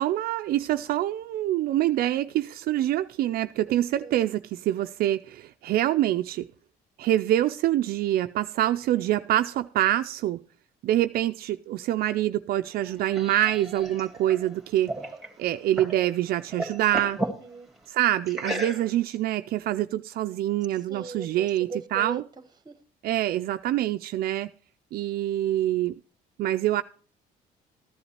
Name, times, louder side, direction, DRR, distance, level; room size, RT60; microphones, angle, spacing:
voice 1, 0.0-6.5 7.0-10.4 10.8-14.9 15.4-17.2 17.9-22.2 23.0-24.5 24.9-25.9 26.4-26.8, right 13 dB, 65° right, 0.4 m, -25 dB
voice 2, 3.7-4.2 17.2-17.7 20.9-22.7, right 4 dB, 25° right, 1.1 m, -40 dB
sound 1, 12.6-16.0 16.3-17.4 18.3-19.1, right 1 dB, ahead, 2.0 m, -34 dB
14.0 x 10.5 x 2.9 m
cardioid pair, 110°, 17 cm